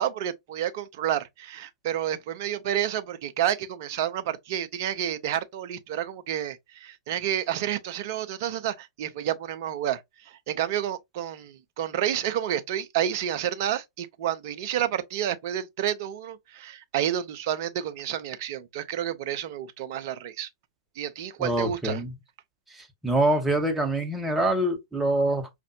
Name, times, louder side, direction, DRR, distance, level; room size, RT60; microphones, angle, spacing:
voice 1, 0.0-20.5 21.0-22.0, right 10 dB, 45° right, 0.6 m, -30 dB
voice 2, 21.4-22.1 22.8-25.5, right 1 dB, 10° right, 1.0 m, -25 dB
5.1 x 2.5 x 2.7 m
figure-of-eight pair, 105°, 2 cm